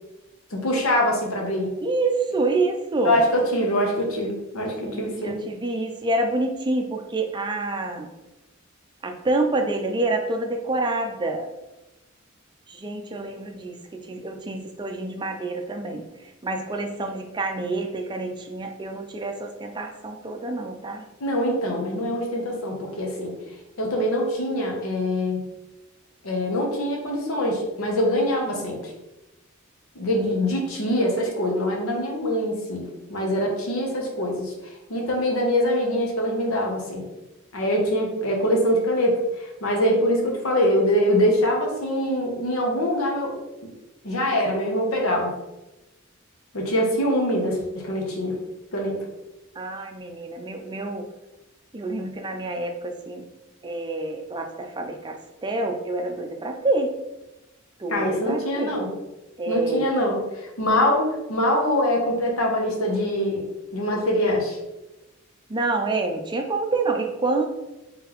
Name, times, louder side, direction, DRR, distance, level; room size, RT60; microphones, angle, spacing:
voice 1, 0.5-1.7 3.0-5.4 21.2-23.3 23.8-25.5 26.2-28.8 29.9-34.5 34.9-37.1 37.5-43.3 44.0-45.3 46.5-48.4 48.7-49.0 57.9-58.9 59.5-63.4 63.7-64.6, equal, 90° left, 0 dB, 1.0 m, -24 dB
voice 2, 1.8-3.2 4.8-8.1 9.0-11.5 12.7-16.0 16.4-21.0 49.6-51.1 51.7-53.2 53.6-55.2 55.4-56.9 57.8-58.8 59.4-59.9 65.5-67.5, right 2 dB, 20° right, 4 dB, 0.4 m, -27 dB
3.8 x 3.4 x 3.0 m, 0.98 s
head